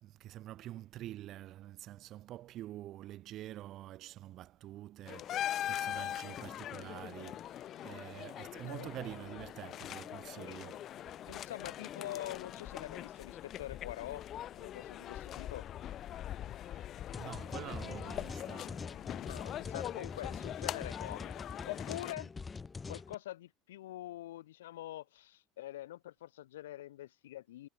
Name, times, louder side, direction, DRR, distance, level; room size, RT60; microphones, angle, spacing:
voice 1, 0.0-10.9 16.6-16.9 17.2-18.8, right 14 dB, 50° right, 1.4 m, -47 dB
sound 1, 5.1-22.2, left 11 dB, 45° left, 0.7 m, -42 dB
voice 2, 11.3-14.3 14.6-15.7 19.3-21.3 21.7-22.3 22.9-27.7, left 14 dB, 75° left, 2.3 m, -45 dB
sound 2, 17.1-23.1, left 4 dB, 20° left, 2.6 m, -44 dB
hypercardioid pair, 80°, 0 cm